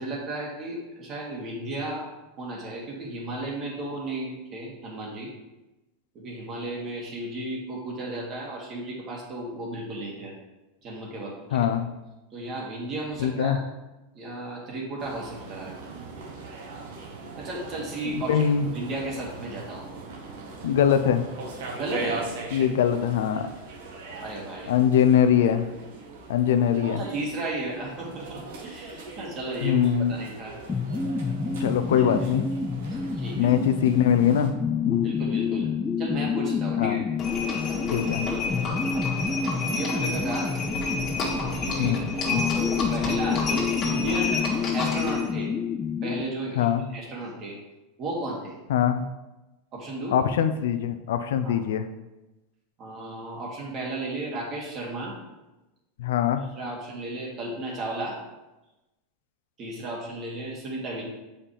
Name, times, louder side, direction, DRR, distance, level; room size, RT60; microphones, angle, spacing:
voice 1, 0.0-2.1 2.4-5.3 6.1-10.3 10.8-11.7 12.3-13.6 14.1-15.8 17.4-19.9 21.7-22.3 24.2-24.7 27.0-30.6 32.0-32.4 32.9-33.5 34.9-35.7 36.0-37.0 39.7-40.5 41.5-44.4 44.7-45.5 46.0-47.6 48.0-48.6 49.7-50.2 51.4-51.7 52.8-55.1 56.6-58.2 59.6-61.0, right 2 dB, 35° right, -2 dB, 2.2 m, -34 dB
voice 2, 11.5-11.9 13.2-13.6 18.3-18.7 20.6-21.2 22.5-23.5 24.7-25.7 26.3-27.0 29.6-30.1 31.6-32.4 33.4-34.5 34.9-35.1 36.8-37.0 37.9-38.3 41.8-42.0 42.3-42.4 46.6-46.8 48.7-49.0 50.1-51.9 56.0-56.4, left 9 dB, 80° left, 9 dB, 0.5 m, -22 dB
sound 1, 15.0-34.5, right 3 dB, 80° right, 1.5 m, -40 dB
sound 2, 30.7-46.2, left 5 dB, 15° left, 0.5 m, -28 dB
Livestock farm animals working animals, 37.2-45.3, left 3 dB, 35° left, 2.0 m, -30 dB
7.4 x 5.2 x 3.4 m, 1.0 s
supercardioid pair, 130°, 0 cm